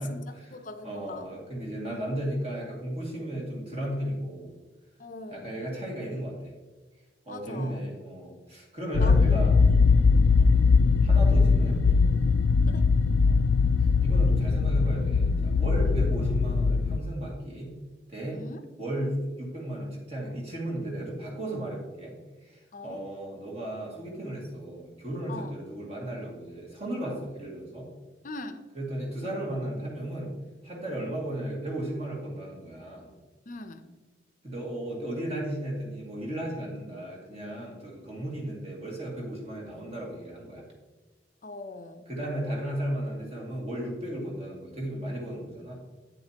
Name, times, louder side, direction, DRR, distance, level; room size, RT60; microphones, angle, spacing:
voice 1, 0.0-1.3 1.7-2.0 5.0-5.6 7.3-7.8 9.0-9.4 9.9-10.4 12.7-12.9 18.3-18.6 22.7-23.0 25.3-25.5 28.2-28.6 33.5-33.9 41.4-42.1, left 2 dB, 45° left, 8 dB, 0.6 m, -42 dB
voice 2, 0.8-4.5 5.3-6.5 7.3-9.5 10.4-10.7 11.0-12.0 13.3-13.4 13.8-17.7 18.1-18.4 18.8-22.1 22.4-27.9 28.7-30.3 30.6-33.1 34.4-40.7 42.1-45.7, right 1 dB, 35° right, -3 dB, 2.2 m, -35 dB
sound 1, 8.9-17.0, left 4 dB, 85° left, 0.4 m, -21 dB
8.9 x 7.6 x 2.9 m, 1.2 s
head